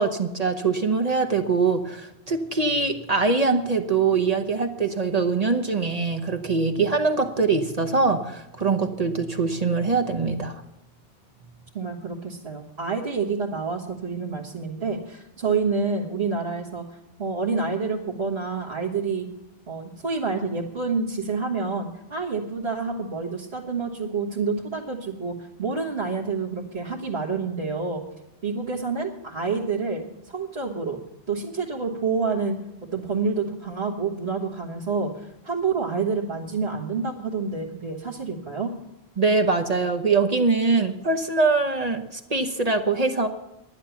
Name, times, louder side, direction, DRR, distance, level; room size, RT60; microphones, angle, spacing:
voice 1, 0.0-10.6 39.2-43.3, right 4 dB, 40° right, 6 dB, 0.9 m, -23 dB
voice 2, 11.7-16.8 17.2-19.3 19.7-28.0 28.4-31.0 31.3-32.6 32.9-38.7, right 4 dB, 70° right, -6 dB, 1.9 m, -28 dB
11.0 x 10.5 x 7.1 m, 0.86 s
omnidirectional pair, 1.1 m